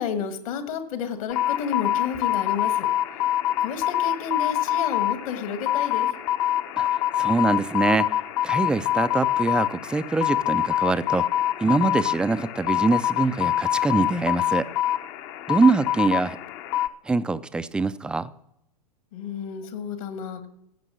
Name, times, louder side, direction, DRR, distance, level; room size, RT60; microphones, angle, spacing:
voice 1, 0.0-2.9 3.6-6.1 19.1-20.5, left 6 dB, 55° left, 9 dB, 1.7 m, -31 dB
sound 1, 1.3-16.9, left 12 dB, 40° left, 0.7 m, -25 dB
voice 2, 7.2-8.1 8.4-11.3 11.6-14.7 15.5-16.4 17.1-18.3, right 3 dB, 5° right, 15 dB, 0.3 m, -23 dB
15.5 x 5.3 x 6.3 m, 0.78 s
hypercardioid pair, 105°, 21 cm